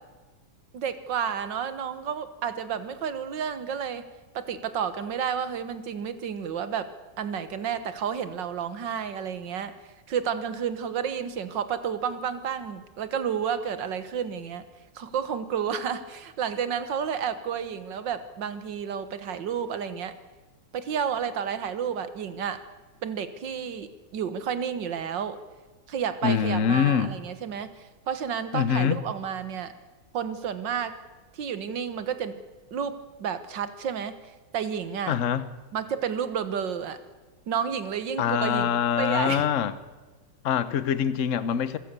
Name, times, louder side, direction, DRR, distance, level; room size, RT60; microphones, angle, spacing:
voice 1, 0.7-4.0 4.3-6.9 7.2-9.7 10.1-14.7 15.0-20.1 20.7-22.6 23.0-25.4 25.9-27.7 28.1-29.7 30.1-30.9 31.3-32.4 32.7-34.2 34.5-35.2 35.7-37.0 37.5-38.7 39.0-39.5, right 7 dB, 60° right, 1.9 m, -31 dB
voice 2, 26.2-27.1 28.5-29.0 35.1-35.5 38.2-39.7 40.4-41.8, left 8 dB, 50° left, 1.0 m, -24 dB
27.0 x 16.5 x 6.8 m
omnidirectional pair, 2.3 m